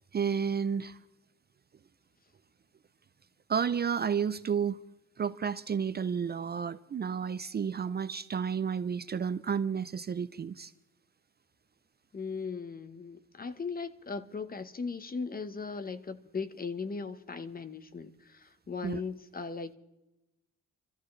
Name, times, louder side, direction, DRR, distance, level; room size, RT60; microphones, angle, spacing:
voice 1, 0.1-1.0 3.5-4.8 5.2-10.7 18.8-19.0, right 7 dB, 35° right, 0.5 m, -31 dB
voice 2, 12.1-19.7, left 4 dB, 30° left, 1.1 m, -38 dB
28.0 x 13.5 x 3.3 m
cardioid pair, 90°, 30 cm